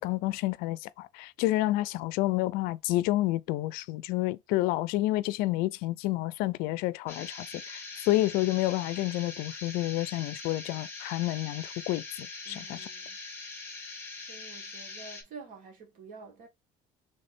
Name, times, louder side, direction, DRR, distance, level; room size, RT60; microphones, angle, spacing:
voice 1, 0.0-12.9, left 17 dB, 70° left, 0.4 m, -29 dB
sound 1, 7.1-15.2, left 3 dB, 15° left, 1.9 m, -42 dB
voice 2, 12.4-13.2 14.3-16.5, right 4 dB, 60° right, 1.8 m, -48 dB
3.3 x 3.2 x 4.1 m
cardioid pair, 115°, 15 cm